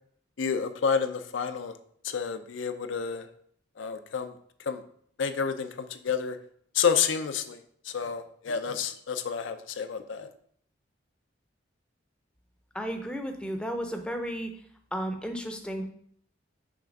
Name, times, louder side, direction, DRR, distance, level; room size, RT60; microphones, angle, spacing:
voice 1, 0.4-1.8 2.0-3.3 3.8-4.3 4.7-4.8 5.2-6.4 6.7-7.6 7.8-10.3, left 6 dB, 85° left, 9 dB, 0.5 m, -29 dB
voice 2, 12.7-14.5 14.9-15.9, equal, 5° left, 5 dB, 0.6 m, -33 dB
6.0 x 3.4 x 5.1 m, 0.64 s
head